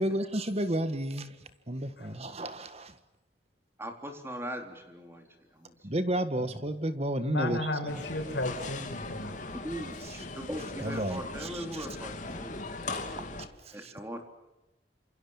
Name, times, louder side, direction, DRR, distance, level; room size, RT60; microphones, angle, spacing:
voice 1, 0.0-1.3 1.7-2.9 5.8-8.0 10.8-11.9 13.6-13.9, right 1 dB, 35° right, 11 dB, 1.7 m, -32 dB
voice 2, 3.8-5.7 9.5-12.6 13.0-13.3 13.7-14.2, equal, 15° right, 5 dB, 3.9 m, -40 dB
voice 3, 7.2-9.4, left 1 dB, 80° left, 6 dB, 5.8 m, -34 dB
sound 1, 7.9-13.5, left 3 dB, 45° left, 2.9 m, -39 dB
28.0 x 27.5 x 7.3 m, 0.97 s
head